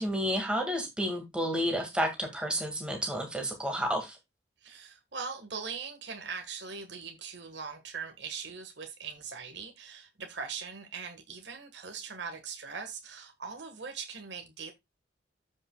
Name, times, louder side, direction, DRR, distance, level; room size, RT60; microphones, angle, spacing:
voice 1, 0.0-4.2, equal, 5° right, 1.8 m, -31 dB
voice 2, 4.6-14.7, right 5 dB, 70° right, 1.4 m, -41 dB
14.0 x 5.4 x 2.2 m
head